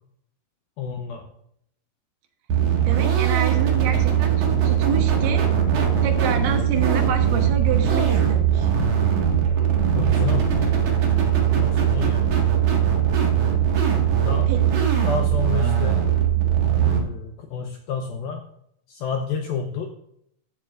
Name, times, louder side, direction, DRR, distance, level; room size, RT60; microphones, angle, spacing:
voice 1, 0.8-1.2 10.0-10.5 11.6-12.4 14.2-14.5 15.0-16.0 16.8-18.4 18.9-19.9, left 6 dB, 85° left, 3 dB, 2.1 m, -29 dB
sound 1, 2.5-17.0, right 9 dB, 55° right, 2.4 m, -20 dB
voice 2, 2.9-5.5 6.0-8.7 14.5-14.6, right 7 dB, 75° right, 4 dB, 1.9 m, -28 dB
15.0 x 8.7 x 2.5 m, 0.72 s
omnidirectional pair, 5.4 m